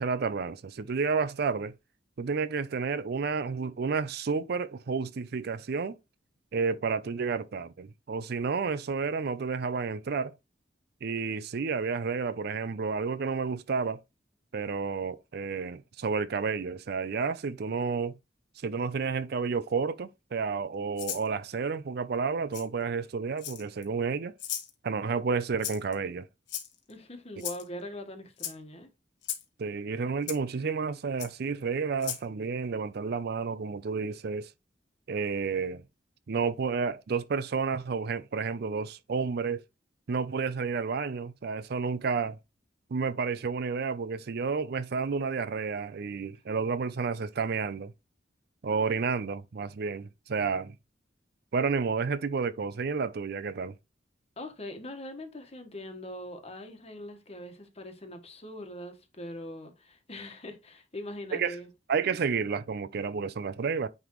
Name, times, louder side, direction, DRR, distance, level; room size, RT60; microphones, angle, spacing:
voice 1, 0.0-1.7 2.2-6.0 6.5-10.3 11.0-14.0 14.5-18.1 18.6-24.3 24.8-26.3 29.6-34.5 35.1-35.8 36.3-39.6 40.1-42.4 42.9-47.9 48.6-50.7 51.5-53.7 61.3-61.5 61.9-63.9, right 5 dB, 60° right, 0.5 m, -31 dB
Rattle (instrument), 21.0-21.3 22.5-22.6 23.4-23.8 24.4-24.7 25.6-25.9 26.5-26.9 27.4-27.6 28.4-28.5 29.2-29.4 30.3-30.4 31.2-31.3 32.0-32.2, left 10 dB, 80° left, 1.4 m, -36 dB
voice 2, 26.9-28.9 54.4-61.7, left 1 dB, 35° left, 1.3 m, -42 dB
9.6 x 3.5 x 3.1 m
head